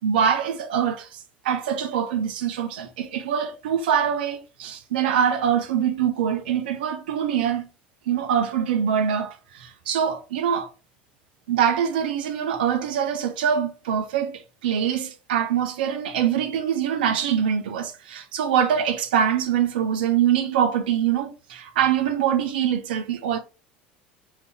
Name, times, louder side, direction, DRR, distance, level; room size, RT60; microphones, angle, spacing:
voice 1, 0.0-7.7 8.1-10.7 11.5-23.4, right 8 dB, 80° right, 0.5 m, -24 dB
3.7 x 2.7 x 3.4 m
hypercardioid pair, 75°, 5 cm